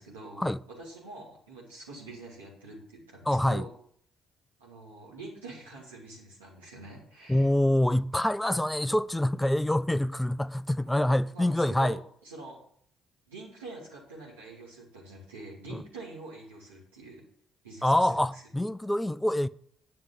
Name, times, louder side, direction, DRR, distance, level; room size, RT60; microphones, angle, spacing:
voice 1, 0.0-3.7 4.6-7.5 11.3-12.6 13.3-17.2 17.6-18.4, right 3 dB, 85° right, 2.8 m, -46 dB
voice 2, 3.3-3.6 7.3-12.0 15.7-15.8 17.8-19.5, left 1 dB, 5° left, 0.4 m, -26 dB
9.6 x 5.9 x 7.8 m
figure-of-eight pair, 45°, 0 cm